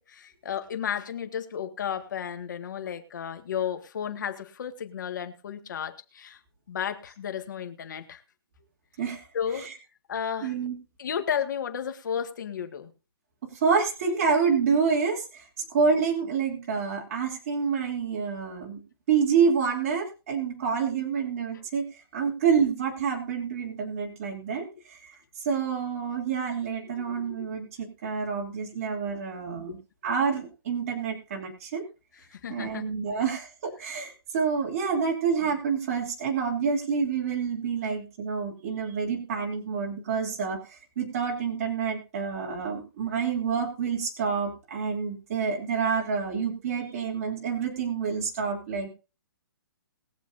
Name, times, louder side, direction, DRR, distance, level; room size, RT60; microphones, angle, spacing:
voice 1, 0.0-6.4 6.7-8.2 9.3-9.7 10.1-10.5 11.0-12.9 27.0-27.5 29.7-29.8 32.3-32.9, left 8 dB, 50° left, 7 dB, 1.7 m, -33 dB
voice 2, 10.4-10.8 13.4-15.4 15.7-18.8 19.1-21.9 22.1-25.1 25.4-29.8 30.0-31.8 32.5-48.9, right 6 dB, 35° right, 0 dB, 2.9 m, -28 dB
21.5 x 7.2 x 2.6 m, 0.31 s
hypercardioid pair, 170°, 12 cm